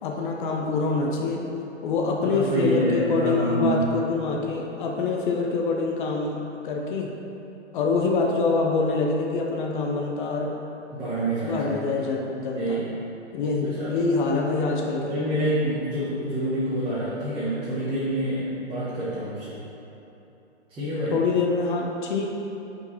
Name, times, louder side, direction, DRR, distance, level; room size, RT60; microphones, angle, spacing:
voice 1, 0.0-1.5 1.8-7.1 7.7-10.6 11.4-12.8 13.3-15.2 21.1-22.3, left 4 dB, 45° left, 0 dB, 0.8 m, -25 dB
voice 2, 2.2-3.9 10.9-12.0 12.6-13.0 13.6-14.0 15.1-19.6 20.7-21.2, right 1 dB, 15° right, -12 dB, 1.3 m, -27 dB
5.3 x 4.9 x 4.1 m, 3.0 s
hypercardioid pair, 130°, 36 cm